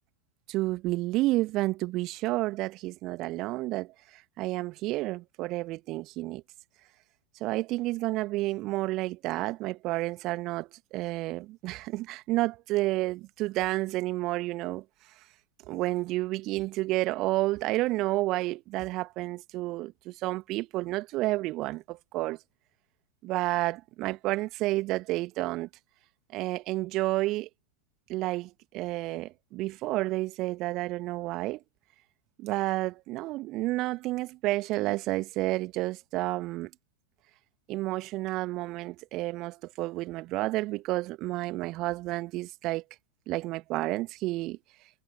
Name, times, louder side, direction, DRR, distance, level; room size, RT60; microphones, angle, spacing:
voice 1, 0.5-6.4 7.4-14.8 15.7-22.4 23.2-25.7 26.3-27.5 28.1-31.6 32.4-36.7 37.7-42.8 43.3-44.6, right 19 dB, 40° right, 2.0 m, -30 dB
figure-of-eight pair, 90°, 0 cm